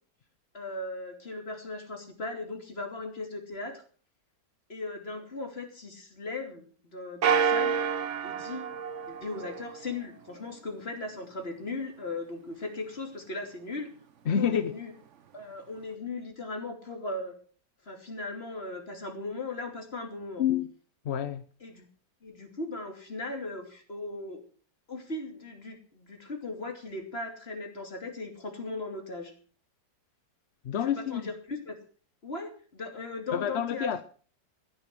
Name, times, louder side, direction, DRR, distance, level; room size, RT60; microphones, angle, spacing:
voice 1, 0.5-3.8 4.7-6.6 6.9-7.8 8.2-8.8 9.1-13.9 14.2-14.9 15.3-17.4 17.8-20.4 21.6-21.8 22.2-24.4 24.9-29.3 30.8-31.7 32.2-33.9, left 2 dB, 35° left, 3.1 m, -38 dB
sound 1, 7.2-9.9, right 6 dB, 50° right, 1.0 m, -28 dB
voice 2, 14.3-14.7 20.4-20.7 21.0-21.4 30.6-31.2 33.3-34.0, left 9 dB, 55° left, 0.7 m, -28 dB
15.0 x 10.5 x 6.1 m
omnidirectional pair, 1.9 m